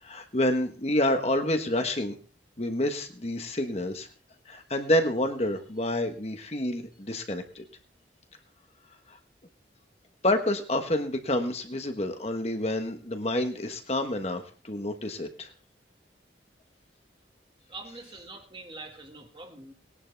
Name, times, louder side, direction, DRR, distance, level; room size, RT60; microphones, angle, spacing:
voice 1, 0.0-2.2 2.6-4.1 4.5-7.6 9.1-9.2 10.2-15.5, left 1 dB, 35° left, 6 dB, 1.2 m, -28 dB
voice 2, 17.7-19.7, right 3 dB, 30° right, 4 dB, 1.8 m, -44 dB
19.0 x 11.0 x 3.4 m, 0.37 s
head